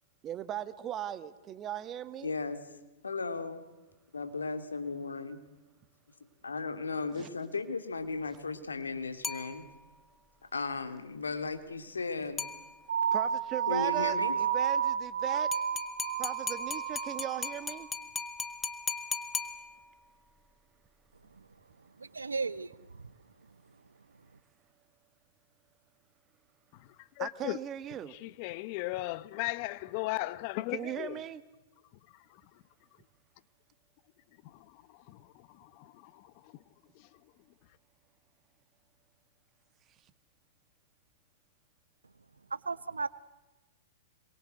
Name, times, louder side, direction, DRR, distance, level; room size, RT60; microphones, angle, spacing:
voice 1, 0.2-2.3 7.1-7.3 13.1-15.5 16.2-17.9 27.2-28.1 30.7-31.4, right 11 dB, 30° right, 1.7 m, -38 dB
voice 2, 2.2-2.6 3.0-3.6 4.1-5.4 6.4-9.7 10.5-12.4 13.7-14.4, left 4 dB, 85° left, 2.7 m, -36 dB
sound 1, 9.2-10.1 12.4-13.1 15.5-20.1, left 5 dB, 15° left, 1.9 m, -38 dB
sound 2, 12.9-17.5, right 8 dB, 70° right, 2.0 m, -31 dB
voice 3, 22.2-22.7 42.5-43.1, right 4 dB, 90° right, 1.1 m, -34 dB
voice 4, 27.2-27.6 28.1-31.2 34.4-36.5, left 19 dB, 45° left, 1.0 m, -37 dB
26.5 x 23.0 x 8.0 m
hypercardioid pair, 110°, 0 cm